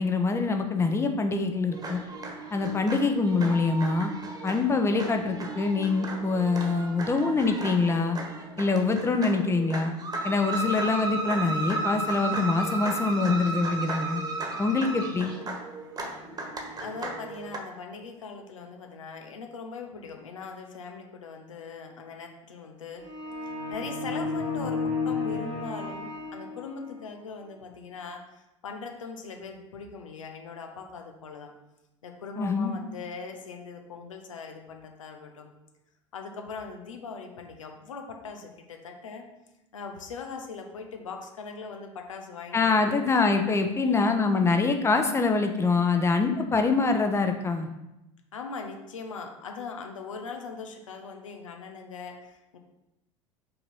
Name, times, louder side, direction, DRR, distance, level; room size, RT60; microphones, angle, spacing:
voice 1, 0.0-2.0 2.5-4.1 4.4-8.2 8.6-9.9 10.2-14.2 14.6-15.3 32.4-32.8 42.5-47.7, left 4 dB, 15° left, 6 dB, 0.8 m, -25 dB
sound 1, 1.7-17.6, right 2 dB, 25° right, 1.4 m, -34 dB
voice 2, 16.8-23.0 23.7-31.5 32.0-35.5 36.1-39.3 39.7-43.1 43.8-44.1 48.3-52.6, left 5 dB, 75° left, 4 dB, 0.9 m, -40 dB
sound 2, 23.0-27.0, left 3 dB, 70° right, 2.2 m, -32 dB
5.7 x 4.1 x 5.4 m, 0.93 s
figure-of-eight pair, 70°, 17 cm